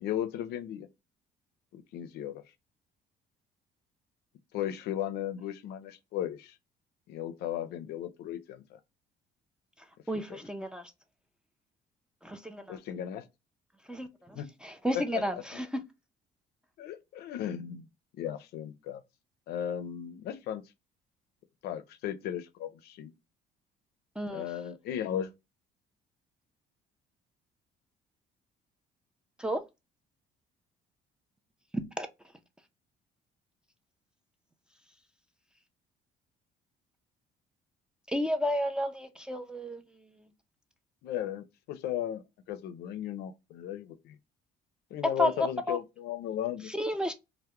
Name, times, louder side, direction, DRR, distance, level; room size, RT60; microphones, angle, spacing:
voice 1, 0.0-0.9 1.7-2.4 4.5-6.5 7.1-8.8 10.3-10.4 12.7-13.2 14.4-14.5 14.9-15.2 16.8-17.8 18.2-19.0 19.5-20.6 21.6-23.1 24.3-25.3 41.0-42.2 42.5-44.2 44.9-46.7, left 10 dB, 75° left, 0.4 m, -36 dB
voice 2, 10.1-10.9 12.2-12.8 13.9-15.8 24.2-24.4 29.4-29.6 31.7-32.1 38.1-39.8 45.0-45.8 46.7-47.1, left 1 dB, 5° right, 0.3 m, -32 dB
2.2 x 2.0 x 2.8 m
cardioid pair, 110°, 17 cm